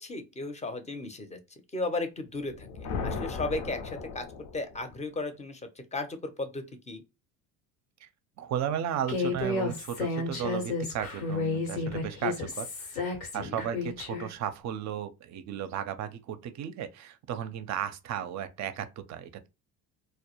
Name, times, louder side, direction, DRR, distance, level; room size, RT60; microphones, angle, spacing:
voice 1, 0.0-1.4 1.7-2.7 3.0-4.2 4.5-5.6 5.9-7.0 13.3-13.7, left 2 dB, 15° left, 0.6 m, -35 dB
sound 1, 2.4-5.0, left 5 dB, 70° left, 0.6 m, -37 dB
voice 2, 8.4-19.5, right 9 dB, 45° right, 0.5 m, -35 dB
Human voice, 9.1-14.3, left 3 dB, 90° left, 0.9 m, -32 dB
2.2 x 2.1 x 2.9 m
hypercardioid pair, 70°, 41 cm